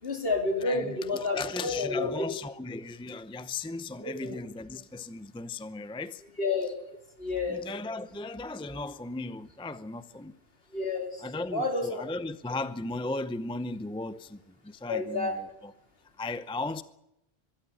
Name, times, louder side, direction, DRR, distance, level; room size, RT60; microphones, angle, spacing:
voice 1, 0.0-2.1 4.0-4.4 6.4-6.7 7.2-7.6 10.7-11.2 11.5-12.0 14.9-15.4, left 3 dB, 65° left, 3.9 m, -30 dB
voice 2, 0.6-6.2 7.5-10.3 11.2-15.5 16.2-16.8, left 3 dB, 5° left, 0.6 m, -36 dB
23.0 x 13.0 x 10.0 m
omnidirectional pair, 1.1 m